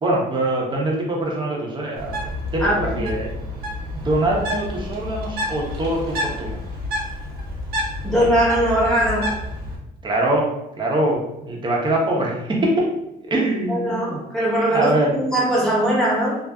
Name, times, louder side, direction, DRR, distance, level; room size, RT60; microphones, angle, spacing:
voice 1, 0.0-3.3 3.9-6.6 10.0-10.5 10.8-12.9 13.3-14.2 14.7-15.1, right 1 dB, 25° right, -2 dB, 0.8 m, -23 dB
Bird, 2.0-9.8, left 1 dB, 65° right, 0.8 m, -29 dB
voice 2, 2.6-3.0 8.0-9.3 13.7-16.4, right 1 dB, 5° left, -6 dB, 1.0 m, -20 dB
2.5 x 2.4 x 2.3 m, 0.91 s
cardioid pair, 110°, 17 cm